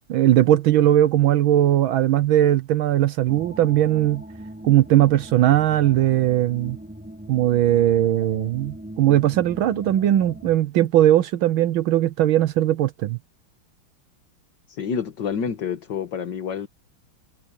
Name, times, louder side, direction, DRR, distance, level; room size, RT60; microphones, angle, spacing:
voice 1, 0.1-4.2 4.6-6.8 7.3-13.2, right 13 dB, 75° right, 1.5 m, -19 dB
sound 1, 3.3-10.6, right 1 dB, 5° right, 2.5 m, -40 dB
voice 2, 14.7-16.7, left 7 dB, 60° left, 2.0 m, -28 dB
omnidirectional pair, 2.3 m